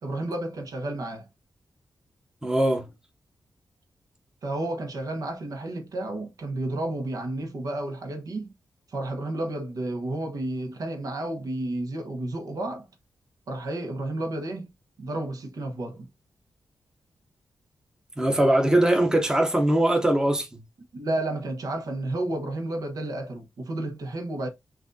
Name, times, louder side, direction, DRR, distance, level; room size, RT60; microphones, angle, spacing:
voice 1, 0.0-1.3 4.4-8.5 8.9-12.9 13.5-14.7 15.0-16.1 20.9-24.5, right 1 dB, 75° right, 1.1 m, -31 dB
voice 2, 2.4-2.9 18.2-20.6, right 1 dB, 10° right, 0.8 m, -21 dB
5.8 x 2.6 x 2.7 m
wide cardioid pair, 120°, 6 cm